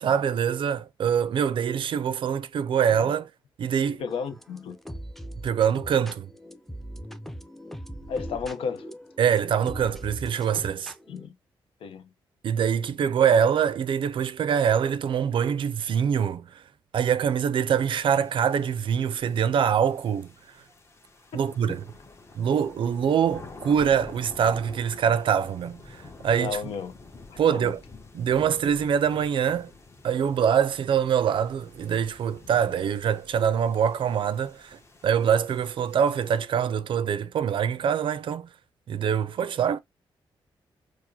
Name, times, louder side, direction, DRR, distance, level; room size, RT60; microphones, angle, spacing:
voice 1, 0.0-3.3 3.6-4.0 5.4-6.3 9.2-10.9 12.4-16.6 16.9-20.3 21.3-21.8 22.3-25.8 26.2-26.6 27.4-27.8 28.1-29.7 30.0-38.5 38.9-39.8, right 8 dB, 65° right, 0.4 m, -24 dB
voice 2, 3.9-4.8 8.1-8.9 11.1-11.4 11.8-12.1 21.3-21.8 26.4-26.9 27.3-27.7, left 6 dB, 80° left, 0.7 m, -34 dB
sound 1, 4.1-11.3, equal, ahead, 0.5 m, -41 dB
sound 2, 18.0-36.4, left 3 dB, 30° left, 1.0 m, -49 dB
4.7 x 2.1 x 2.8 m
cardioid pair, 70°, 9 cm